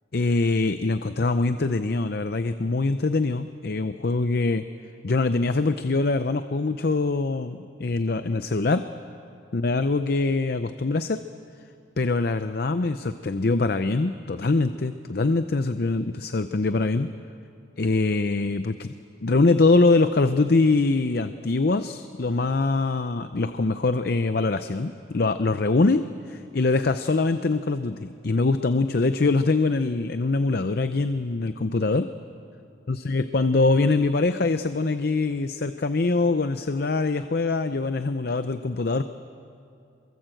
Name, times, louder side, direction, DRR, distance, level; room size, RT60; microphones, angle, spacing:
voice 1, 0.1-4.6 5.0-8.9 9.5-11.2 12.0-17.1 17.8-18.9 19.2-32.1 32.9-39.0, left 3 dB, 50° left, 10 dB, 0.6 m, -23 dB
25.5 x 23.0 x 7.8 m, 2.7 s
head